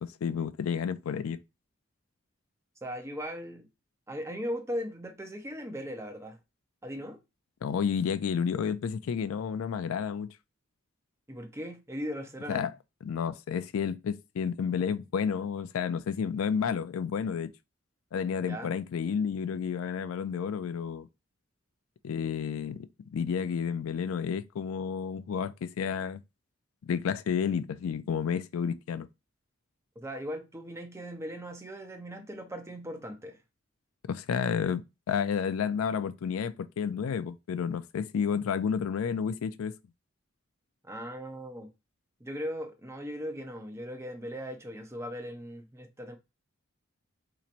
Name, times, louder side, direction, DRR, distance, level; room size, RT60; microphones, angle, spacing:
voice 1, 0.0-1.4 7.6-10.3 12.5-12.7 13.0-17.5 18.1-21.1 22.0-26.2 26.8-29.1 34.1-39.7, left 7 dB, 90° left, 0.4 m, -31 dB
voice 2, 2.8-3.7 4.1-6.4 6.8-7.2 11.3-12.6 18.4-18.7 30.0-33.4 40.8-41.7 42.2-46.2, equal, 15° right, 0.6 m, -38 dB
4.2 x 2.9 x 2.5 m
head